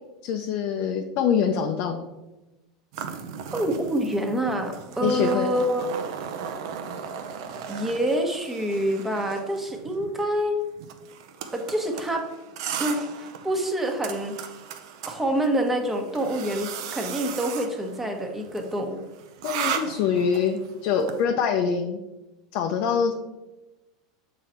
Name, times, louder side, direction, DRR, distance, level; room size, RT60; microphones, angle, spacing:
voice 1, 0.2-2.1 5.0-5.5 19.4-22.0 22.5-23.1, left 7 dB, 60° left, 3 dB, 0.6 m, -24 dB
sound 1, 2.9-21.2, right 7 dB, 70° right, 0.7 m, -37 dB
voice 2, 3.5-5.8 7.7-10.6 11.5-12.3 12.8-14.4 15.1-19.0, right 1 dB, 10° right, 3 dB, 1.1 m, -26 dB
6.7 x 4.0 x 4.4 m, 1.0 s
supercardioid pair, 120°, 3 cm